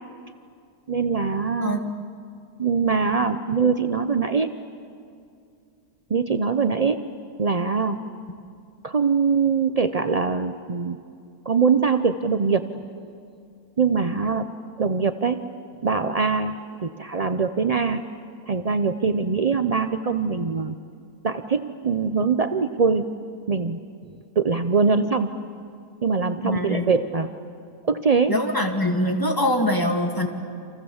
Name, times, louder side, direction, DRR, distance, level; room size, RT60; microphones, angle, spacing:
voice 1, 0.9-1.9 2.6-4.5 6.1-7.1 7.4-8.0 8.8-11.0 11.5-12.7 13.8-14.5 14.8-15.4 15.8-18.0 18.5-20.8 21.2-23.0 23.5-23.8 24.4-25.3 26.0-27.3 27.8-28.4, right 5 dB, 60° right, 9 dB, 0.4 m, -22 dB
voice 2, 1.6-1.9 26.4-26.9 28.3-30.3, left 1 dB, 10° left, 3 dB, 2.3 m, -23 dB
29.5 x 27.5 x 7.2 m, 2.4 s
omnidirectional pair, 1.8 m